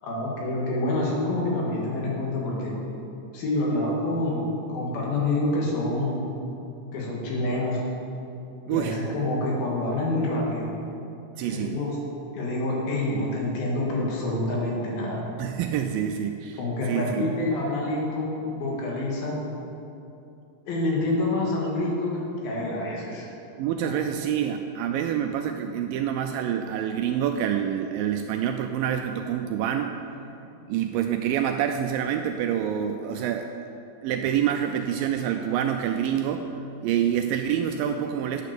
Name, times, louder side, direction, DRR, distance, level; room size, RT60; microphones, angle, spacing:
voice 1, 0.0-2.8 3.3-6.2 6.9-7.8 8.7-10.7 11.5-12.0 12.3-15.3 16.6-19.4 20.7-23.3 23.8-24.0, left 2 dB, 70° left, -3 dB, 3.6 m, -27 dB
voice 2, 8.7-9.0 11.4-11.8 15.4-16.6 16.9-17.2 23.6-33.5 34.0-36.5 36.8-38.4, right 9 dB, 85° right, 5 dB, 2.0 m, -27 dB
9.3 x 8.7 x 6.7 m, 2.7 s
omnidirectional pair, 4.5 m